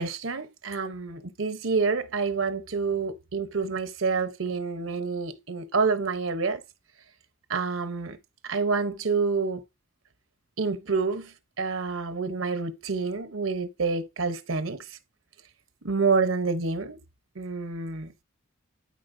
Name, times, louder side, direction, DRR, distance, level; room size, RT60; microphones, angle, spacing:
voice 1, 0.0-6.6 7.5-8.2 8.4-9.6 10.6-14.9 15.8-17.0 17.3-18.1, right 4 dB, 80° right, 1.0 m, -28 dB
12.5 x 4.4 x 2.7 m
head